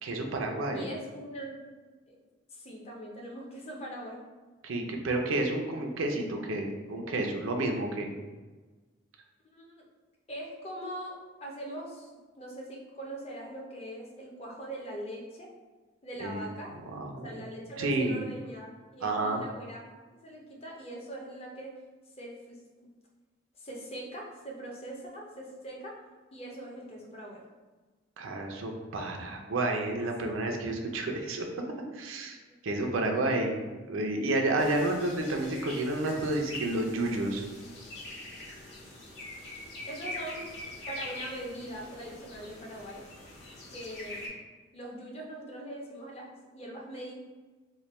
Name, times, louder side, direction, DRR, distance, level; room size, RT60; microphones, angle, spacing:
voice 1, 0.0-0.9 4.6-8.1 16.2-16.4 16.9-17.3 17.8-18.2 19.0-19.4 28.2-31.5 31.9-32.4 32.6-37.5, right 2 dB, 90° right, 2 dB, 0.5 m, -30 dB
voice 2, 0.7-1.6 2.1-2.2 2.5-4.2 9.5-9.8 10.3-12.1 12.4-15.5 16.0-16.7 17.2-19.8 20.2-21.7 22.2-22.6 23.6-26.0 26.3-27.4 39.9-40.5 40.9-43.1 43.7-44.3 44.7-47.1, right 1 dB, 30° left, -1 dB, 0.6 m, -41 dB
sound 1, 34.6-44.3, left 1 dB, 55° left, 0.9 m, -43 dB
3.1 x 2.2 x 4.1 m, 1.3 s
head